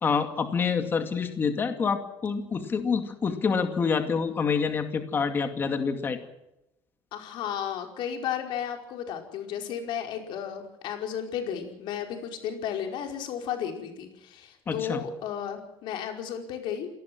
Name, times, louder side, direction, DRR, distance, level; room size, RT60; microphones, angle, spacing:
voice 1, 0.0-6.2 14.7-15.0, left 5 dB, 25° left, 7 dB, 2.3 m, -27 dB
voice 2, 7.1-17.0, left 8 dB, 65° left, 4 dB, 4.9 m, -33 dB
28.5 x 18.5 x 6.2 m, 0.88 s
cardioid pair, 180°, 9 cm